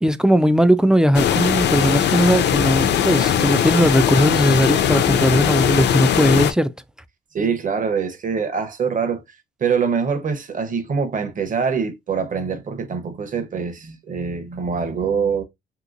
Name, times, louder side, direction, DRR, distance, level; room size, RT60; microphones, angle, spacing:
voice 1, 0.0-6.7, equal, 5° right, 0.3 m, -18 dB
sound 1, 1.1-6.5, left 9 dB, 60° left, 0.5 m, -19 dB
voice 2, 7.3-9.2 9.6-15.4, right 6 dB, 40° right, 0.9 m, -24 dB
3.1 x 2.9 x 2.5 m
cardioid pair, 90°, 20 cm